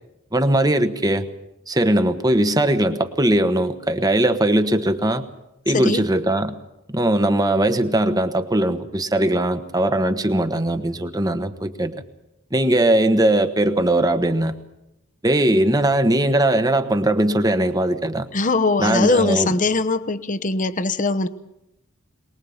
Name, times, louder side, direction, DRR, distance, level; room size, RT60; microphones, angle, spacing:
voice 1, 0.3-1.3 1.7-5.2 5.7-6.6 6.9-11.9 12.5-14.5 15.2-18.3 18.8-19.5, right 1 dB, 20° right, 9 dB, 1.2 m, -20 dB
voice 2, 5.7-6.0 18.3-21.3, left 3 dB, 35° left, 12 dB, 0.9 m, -21 dB
23.0 x 20.0 x 7.2 m, 0.86 s
head